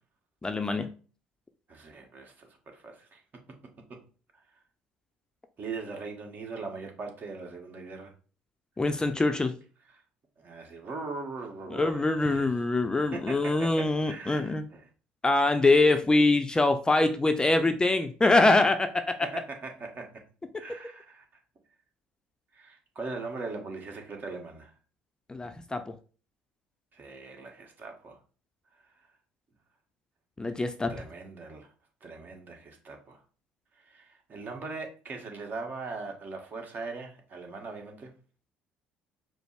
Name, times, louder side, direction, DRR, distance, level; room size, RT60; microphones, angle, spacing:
voice 1, 0.4-0.9 8.8-9.6 11.7-14.6 15.2-19.2 25.3-25.9 30.4-31.0, left 2 dB, 20° left, 0.5 m, -24 dB
voice 2, 1.7-3.2 3.9-4.0 5.6-8.1 9.9-10.0 10.4-12.5 13.1-14.8 19.2-20.2 20.6-21.2 22.5-24.7 26.9-28.2 30.9-31.7 32.0-33.2 33.7-38.1, right 3 dB, 45° right, 1.4 m, -40 dB
5.0 x 2.0 x 4.7 m
hypercardioid pair, 60°, 4 cm